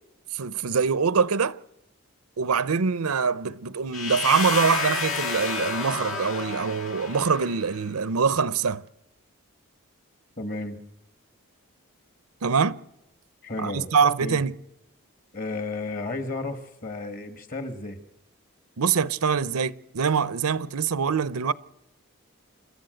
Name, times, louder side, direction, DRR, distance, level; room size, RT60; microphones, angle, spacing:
voice 1, 0.3-1.6 2.4-8.8 12.4-12.8 13.6-14.5 18.8-21.5, right 5 dB, 90° right, 0.7 m, -24 dB
sound 1, 3.9-7.8, left 4 dB, 65° left, 2.0 m, -30 dB
voice 2, 10.4-10.8 13.4-13.9 14.2-14.4 15.3-18.0, left 2 dB, 40° left, 1.8 m, -33 dB
29.0 x 13.5 x 7.8 m
head